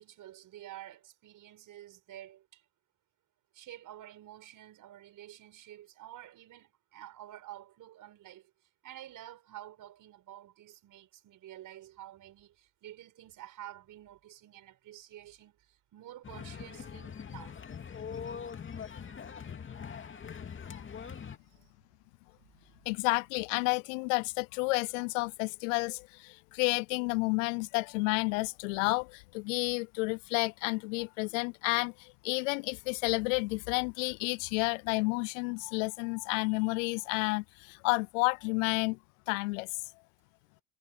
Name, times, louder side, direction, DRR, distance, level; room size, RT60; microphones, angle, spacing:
voice 1, 0.0-2.6 3.5-17.6 21.5-21.7 22.4-22.5, right 13 dB, 55° right, 5.9 m, -50 dB
sound 1, 16.2-21.4, left 7 dB, 30° left, 2.5 m, -42 dB
voice 2, 22.9-39.0 39.3-39.8, left 28 dB, 85° left, 0.5 m, -31 dB
supercardioid pair, 85°, 37 cm